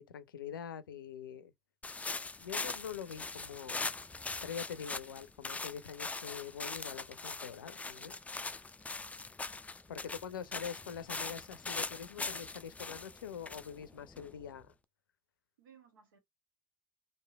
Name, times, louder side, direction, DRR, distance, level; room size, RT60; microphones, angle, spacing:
voice 1, 0.0-1.5 2.2-3.9 4.4-8.1 9.9-14.7, left 8 dB, 85° left, 0.5 m, -44 dB
sound 1, 1.8-14.6, left 3 dB, 15° left, 0.4 m, -41 dB
voice 2, 10.0-10.7 15.6-16.2, right 6 dB, 80° right, 1.3 m, -62 dB
3.1 x 2.6 x 2.3 m
hypercardioid pair, 65°, 11 cm